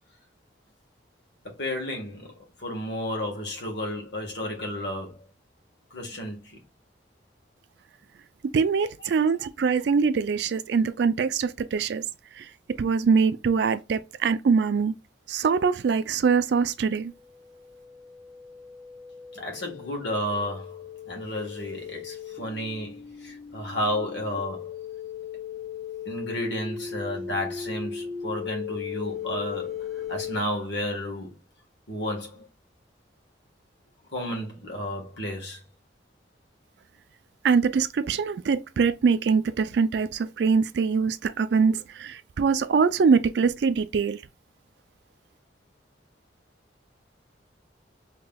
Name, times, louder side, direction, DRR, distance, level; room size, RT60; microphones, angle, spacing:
voice 1, 1.4-2.3 2.6-5.3 5.9-6.6 19.3-24.7 26.0-31.4 31.9-32.5 34.1-35.6, left 1 dB, 70° left, 1.4 m, -32 dB
voice 2, 8.5-12.0 12.4-12.5 12.8-14.9 15.3-17.1 37.4-44.2, right 5 dB, 65° right, 0.3 m, -23 dB
sound 1, 17.1-30.4, left 7 dB, ahead, 0.9 m, -38 dB
5.5 x 2.9 x 2.2 m
head